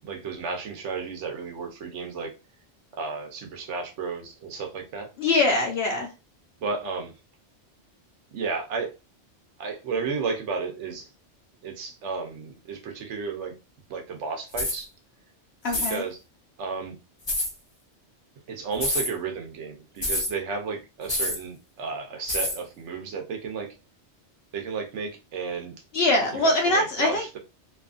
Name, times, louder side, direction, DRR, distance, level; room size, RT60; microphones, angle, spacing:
voice 1, 0.0-2.3 3.0-5.1 6.6-7.1 8.3-8.9 9.6-11.1 11.6-13.5 13.9-14.9 15.7-16.2 16.6-17.0 18.5-23.7 24.5-25.8 26.3-27.4, right 5 dB, 90° right, 3 dB, 1.0 m, -33 dB
voice 2, 5.2-6.1 15.6-16.0 25.9-27.3, left 2 dB, 65° left, 0 dB, 0.8 m, -23 dB
sound 1, 14.5-14.8 15.7-16.0 17.3-17.5 18.7-19.1 20.0-20.3 21.1-21.4 22.3-22.6, left 1 dB, 30° left, 0.6 m, -27 dB
2.7 x 2.4 x 2.3 m, 0.29 s
omnidirectional pair, 1.2 m